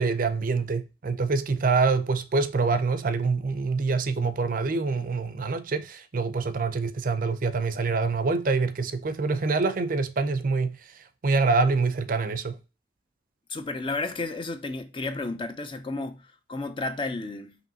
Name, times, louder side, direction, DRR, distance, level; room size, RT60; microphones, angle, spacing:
voice 1, 0.0-10.8 11.2-12.6, right 4 dB, 50° right, 0.5 m, -25 dB
voice 2, 13.5-17.6, left 3 dB, 30° left, 0.5 m, -32 dB
5.1 x 3.0 x 2.7 m
head